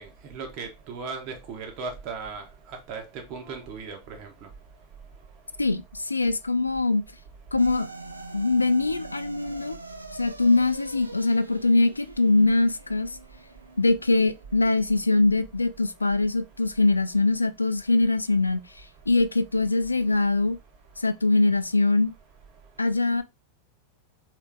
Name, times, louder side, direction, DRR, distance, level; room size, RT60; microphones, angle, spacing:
voice 1, 0.0-2.4 2.9-3.0 3.3-4.5, right 4 dB, 40° right, 1.3 m, -37 dB
voice 2, 5.6-7.0 7.5-7.9 8.3-9.8 10.1-13.1 13.8-18.6 19.1-20.6 21.0-22.1 22.8-23.2, left 2 dB, 80° left, 0.4 m, -22 dB
sound 1, 7.6-16.1, right 2 dB, 85° right, 0.4 m, -44 dB
3.7 x 3.1 x 3.7 m
figure-of-eight pair, 90°, 0 cm